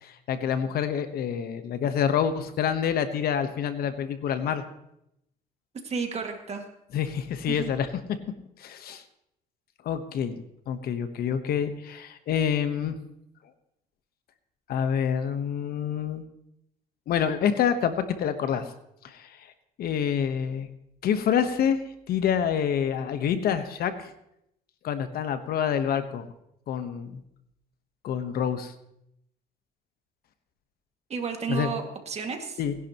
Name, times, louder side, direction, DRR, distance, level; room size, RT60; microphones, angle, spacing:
voice 1, 0.0-4.6 6.9-7.9 8.6-9.0 9.8-13.0 14.7-16.2 17.1-18.7 19.0-19.4 19.8-20.7 21.0-21.8 22.1-24.1 24.8-26.2 26.7-27.2 28.0-28.7 31.5-31.7 32.6-32.7, left 8 dB, 65° left, 10 dB, 1.1 m, -27 dB
voice 2, 5.8-6.7 7.5-7.7 31.1-32.6, right 5 dB, 40° right, 4 dB, 2.1 m, -32 dB
20.0 x 11.0 x 3.0 m, 0.80 s
cardioid pair, 110°, 17 cm